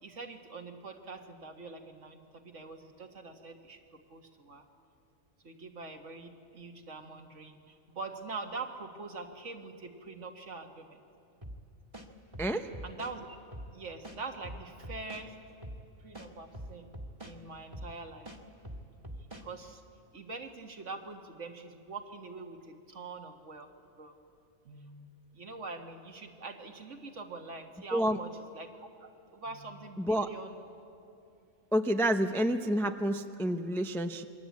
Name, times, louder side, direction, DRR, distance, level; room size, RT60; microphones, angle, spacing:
voice 1, 0.0-3.8 4.1-4.6 5.4-11.0 12.8-13.3 13.7-15.3 16.0-16.9 17.2-18.3 19.4-19.8 20.1-23.7 24.0-24.1 24.7-25.1 25.3-30.6, right 3 dB, 60° right, 5 dB, 1.8 m, -44 dB
sound 1, 11.4-11.6 11.9-13.1 13.5-13.7 14.0-15.3 15.6-15.8 16.1-17.4 17.7-17.9 18.3-19.5, equal, 25° right, 1.8 m, -43 dB
voice 2, 12.4-12.7 27.9-28.2 30.0-30.3 31.7-34.2, equal, 5° left, 7 dB, 0.5 m, -29 dB
27.5 x 22.5 x 8.4 m, 2.7 s
omnidirectional pair, 1.4 m